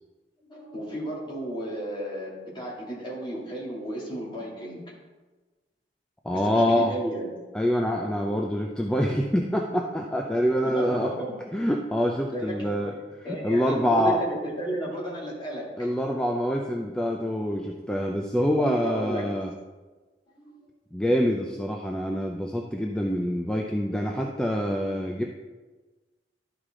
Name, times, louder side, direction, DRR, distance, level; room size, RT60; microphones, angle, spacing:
voice 1, 0.5-4.9 6.3-7.3 10.6-11.4 12.3-12.7 13.2-15.9 18.6-19.2 20.3-20.6, right 1 dB, 25° left, -5 dB, 2.4 m, -33 dB
voice 2, 6.2-6.9 7.5-11.1 11.5-14.2 15.8-19.5 20.9-25.2, equal, 5° left, 0 dB, 0.5 m, -26 dB
12.0 x 4.9 x 3.7 m, 1.3 s
head